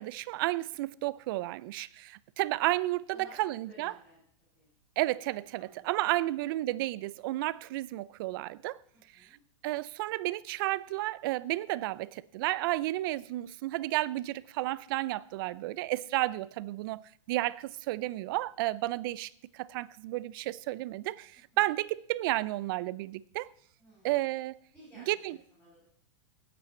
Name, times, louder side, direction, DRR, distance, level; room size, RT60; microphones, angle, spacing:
voice 1, 0.0-3.9 5.0-8.8 9.2-9.3 9.6-17.0 17.3-23.5 24.0-24.6 25.1-25.4, right 17 dB, 45° right, 0.5 m, -32 dB
voice 2, 3.1-4.2 4.5-4.7 5.5-6.1 6.4-6.5 8.9-9.4 21.5-21.8 23.8-24.3 24.7-25.9, equal, 10° left, 7.3 m, -57 dB
18.5 x 8.7 x 4.4 m
hypercardioid pair, 150°, 17 cm